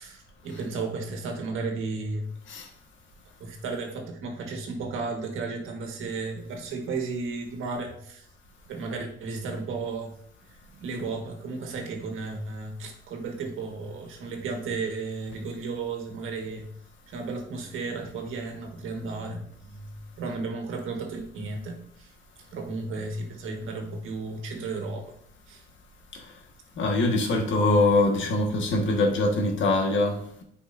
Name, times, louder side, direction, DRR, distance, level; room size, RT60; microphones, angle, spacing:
voice 1, 0.0-2.3 3.4-8.3 8.7-10.1 10.8-16.7 17.1-22.1 22.5-25.0 25.5-25.6, right 3 dB, 80° right, 1.7 m, -34 dB
voice 2, 26.8-30.4, left 2 dB, 70° left, 1.7 m, -23 dB
8.8 x 5.3 x 2.7 m
cardioid pair, 95°, 21 cm